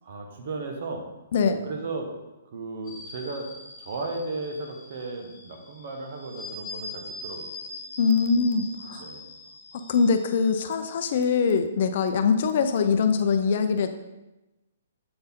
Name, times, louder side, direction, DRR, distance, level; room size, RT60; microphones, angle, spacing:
voice 1, 0.0-1.1 1.4-2.1 2.5-3.5 3.8-7.7 9.0-9.3, right 3 dB, 50° right, 3 dB, 1.2 m, -35 dB
sound 1, 2.8-10.5, left 2 dB, 20° left, 1.3 m, -42 dB
voice 2, 8.0-9.0 9.7-13.9, left 5 dB, 50° left, 8 dB, 0.5 m, -23 dB
7.6 x 4.2 x 3.6 m, 1.0 s
hypercardioid pair, 165°, 0 cm